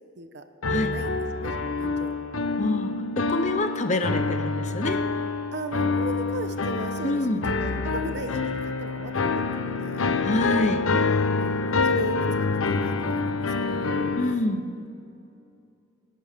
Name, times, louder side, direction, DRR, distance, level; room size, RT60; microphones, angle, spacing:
sound 1, 0.6-14.3, left 4 dB, 75° left, 0.7 m, -26 dB
voice 1, 0.7-2.1 3.6-3.7 5.5-10.1 11.0-12.3 12.5-14.1, right 2 dB, 55° right, 8 dB, 0.9 m, -38 dB
voice 2, 2.6-5.0 7.0-7.4 10.2-10.9 14.1-14.6, left 2 dB, 35° left, 9 dB, 0.7 m, -26 dB
25.5 x 11.0 x 3.6 m, 2.7 s
head